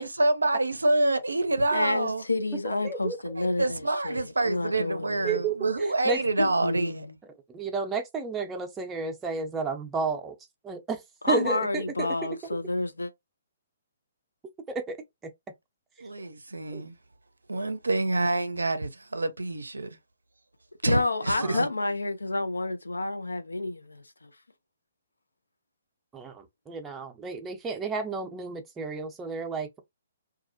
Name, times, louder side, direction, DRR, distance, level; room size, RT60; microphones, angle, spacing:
voice 1, 0.0-2.2 3.4-7.1 16.0-17.0 17.5-19.9 20.8-21.7, right 2 dB, 80° right, 0.5 m, -27 dB
voice 2, 1.7-5.5 6.4-7.2 11.2-13.1 20.8-24.3, left 2 dB, 80° left, 0.5 m, -29 dB
voice 3, 2.8-3.2 3.4-3.5 5.2-5.6 6.0-6.2 7.5-10.3 10.6-12.4 14.7-15.0 16.7-16.8 21.4-21.6 26.1-29.8, right 4 dB, 15° right, 0.6 m, -32 dB
2.4 x 2.0 x 2.6 m
figure-of-eight pair, 125°, 0 cm